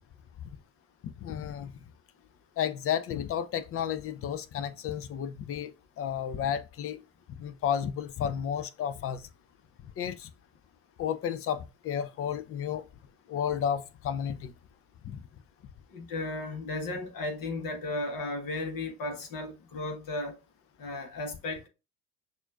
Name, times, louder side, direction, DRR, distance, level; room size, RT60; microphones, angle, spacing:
voice 1, 1.0-1.7 2.6-5.7 6.0-7.0 7.4-9.2 10.0-10.3 11.0-12.9 13.3-14.5 15.0-15.2, left 9 dB, 30° left, 0.5 m, -32 dB
voice 2, 15.9-20.4 20.8-21.7, left 2 dB, 45° left, 1.4 m, -35 dB
6.0 x 2.5 x 2.4 m
figure-of-eight pair, 60°, 45 cm